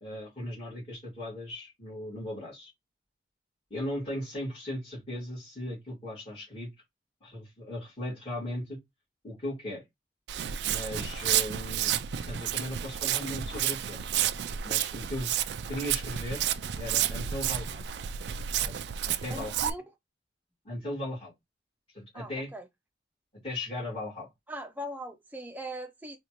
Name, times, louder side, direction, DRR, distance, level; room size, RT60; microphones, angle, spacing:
voice 1, 0.0-2.7 3.7-6.7 7.2-8.8 9.2-9.8 10.6-11.9 12.3-14.0 14.6-15.3 15.7-16.4 16.8-17.8 18.6-18.8 19.0-19.7 20.6-21.3 21.9-22.5 23.4-24.3, left 1 dB, 30° left, 2.2 m, -37 dB
Walk footsteps, 10.3-19.7, right 10 dB, 65° right, 0.3 m, -31 dB
voice 2, 19.3-19.8 22.1-22.6 24.5-26.2, right 1 dB, 10° right, 0.6 m, -40 dB
4.2 x 2.4 x 2.9 m
head